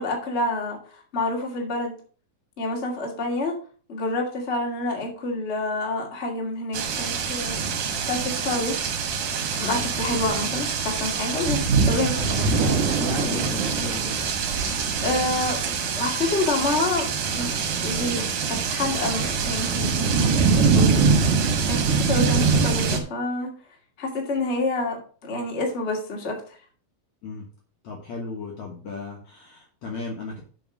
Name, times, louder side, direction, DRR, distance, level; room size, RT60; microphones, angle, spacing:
voice 1, 0.0-1.9 2.6-3.5 3.9-7.6 8.0-8.8 9.6-12.5 15.0-21.0 21.3-23.5 24.0-26.6, left 2 dB, 25° left, 0 dB, 1.6 m, -28 dB
sound 1, 6.7-23.0, right 5 dB, 60° right, 2.5 m, -24 dB
voice 2, 12.0-14.2 21.6-21.7 27.2-27.5 27.8-30.4, left 4 dB, 60° left, 0 dB, 2.1 m, -35 dB
7.8 x 5.2 x 6.1 m, 0.41 s
omnidirectional pair, 4.5 m